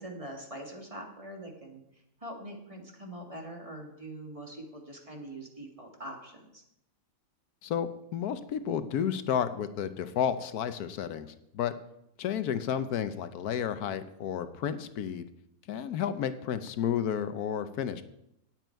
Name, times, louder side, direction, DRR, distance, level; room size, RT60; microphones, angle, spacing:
voice 1, 0.0-1.8 2.2-6.6, right 1 dB, 20° right, 1 dB, 2.1 m, -43 dB
voice 2, 7.6-11.7 12.2-15.3 15.7-18.0, left 8 dB, 85° left, 11 dB, 1.3 m, -31 dB
18.0 x 7.9 x 4.6 m, 0.82 s
omnidirectional pair, 1.6 m